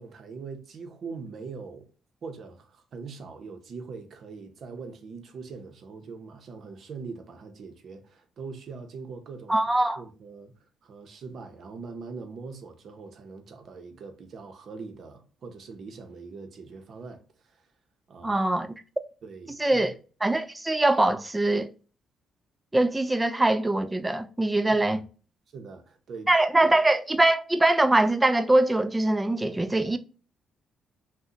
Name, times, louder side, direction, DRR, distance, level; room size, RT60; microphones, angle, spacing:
voice 1, 0.0-1.9 2.2-17.7 18.1-18.4 19.2-20.0 24.7-25.0 25.5-26.3 26.6-26.7, right 4 dB, 60° right, 0.7 m, -42 dB
voice 2, 9.5-10.0 18.2-18.7 19.6-19.9 20.2-21.7 22.7-25.0 26.3-30.0, right 2 dB, 15° right, 0.4 m, -23 dB
2.7 x 2.1 x 3.6 m
cardioid pair, 90°, 0 cm